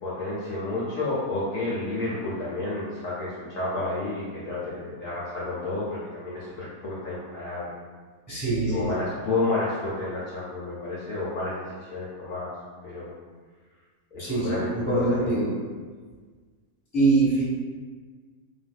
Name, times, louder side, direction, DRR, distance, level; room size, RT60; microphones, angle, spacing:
voice 1, 0.0-7.7 8.7-12.5 12.8-13.1 14.1-15.4, left 2 dB, 65° left, -8 dB, 1.0 m, -31 dB
voice 2, 8.3-8.9 14.2-15.5 16.9-17.4, right 3 dB, 5° left, -10 dB, 1.2 m, -23 dB
3.4 x 2.5 x 2.2 m, 1.5 s
omnidirectional pair, 1.7 m